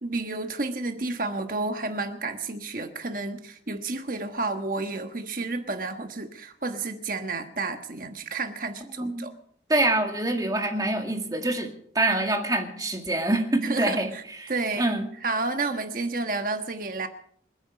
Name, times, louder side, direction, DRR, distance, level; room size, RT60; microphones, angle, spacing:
voice 1, 0.0-9.3 13.7-14.2 14.5-14.8 15.2-17.1, right 3 dB, 50° right, 6 dB, 1.3 m, -31 dB
voice 2, 9.0-9.3 9.7-15.1, right 2 dB, 20° right, 4 dB, 2.1 m, -26 dB
28.0 x 9.8 x 5.1 m, 0.62 s
head